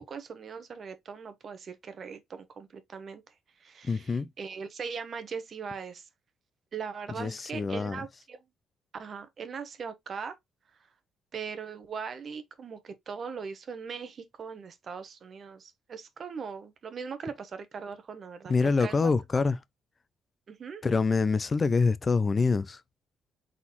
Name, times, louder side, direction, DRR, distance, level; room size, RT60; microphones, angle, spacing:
voice 1, 0.0-3.2 3.6-6.1 6.7-8.4 8.9-10.4 11.3-19.4 20.5-20.8, right 6 dB, 50° right, 1.0 m, -40 dB
voice 2, 3.9-4.3 7.2-8.0 18.5-19.6 20.8-22.8, left 4 dB, 30° left, 0.4 m, -26 dB
4.1 x 3.7 x 2.9 m
cardioid pair, 90°, 0 cm